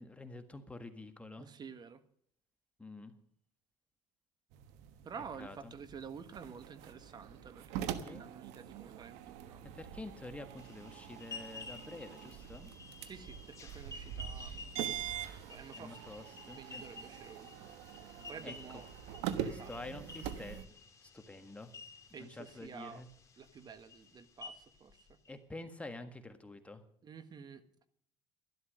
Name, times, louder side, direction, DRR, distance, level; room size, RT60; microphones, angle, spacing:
voice 1, 0.0-1.5 2.8-3.1 5.4-5.7 8.0-8.2 9.7-12.7 15.8-16.8 18.4-18.6 19.4-20.6 21.0-21.7 22.2-23.1 25.3-26.8, left 2 dB, 10° left, 7 dB, 1.6 m, -48 dB
voice 2, 1.4-2.0 5.0-9.6 13.0-14.8 15.5-16.0 16.6-17.7 18.1-18.9 19.4-19.7 22.1-23.0 23.4-25.2 27.0-27.9, right 6 dB, 35° right, 12 dB, 1.4 m, -50 dB
sound 1, 4.5-20.6, right 10 dB, 85° right, 1.2 m, -44 dB
sound 2, 10.6-25.3, left 4 dB, 25° left, 2.6 m, -52 dB
12.5 x 12.0 x 6.5 m, 0.65 s
cardioid pair, 110°, 12 cm